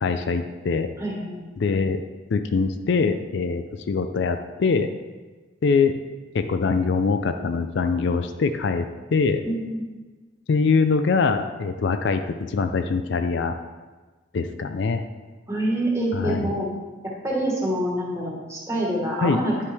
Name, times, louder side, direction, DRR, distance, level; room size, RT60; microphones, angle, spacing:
voice 1, 0.0-0.9 1.6-2.0 2.3-4.9 5.6-5.9 6.3-9.4 10.5-13.5 14.3-15.0 16.1-16.6 19.2-19.4, left 4 dB, 60° left, 8 dB, 0.4 m, -23 dB
voice 2, 1.0-1.4 9.4-9.8 15.5-16.7 17.0-19.5, right 1 dB, 15° right, -4 dB, 1.5 m, -26 dB
9.6 x 5.5 x 3.4 m, 1.3 s
head